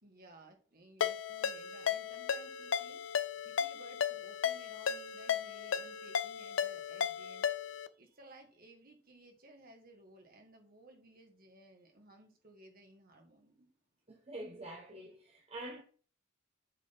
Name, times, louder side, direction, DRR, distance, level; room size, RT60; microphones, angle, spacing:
voice 1, 0.0-3.0 3.4-13.7, right 2 dB, 50° right, 1.8 m, -58 dB
Ringtone, 1.0-7.9, left 7 dB, 75° left, 0.5 m, -35 dB
voice 2, 14.1-15.8, right 1 dB, 30° right, 0.9 m, -46 dB
7.5 x 3.8 x 5.8 m
head